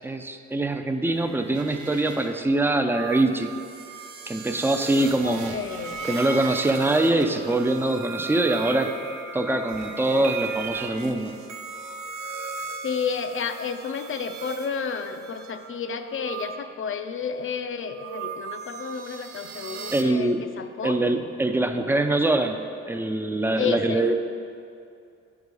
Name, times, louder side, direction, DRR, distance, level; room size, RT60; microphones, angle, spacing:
voice 1, 0.0-3.5 4.3-5.6 6.0-8.9 9.3-11.3 19.9-20.4 20.8-22.6 22.9-24.2, right 2 dB, 5° right, 6 dB, 0.5 m, -23 dB
sound 1, 1.0-16.6 17.4-20.0, right 5 dB, 70° right, 0.8 m, -37 dB
voice 2, 5.2-6.0 12.8-21.0 23.6-24.2, left 6 dB, 45° left, 8 dB, 0.6 m, -31 dB
9.5 x 4.8 x 5.4 m, 2.5 s
cardioid pair, 90°, 30 cm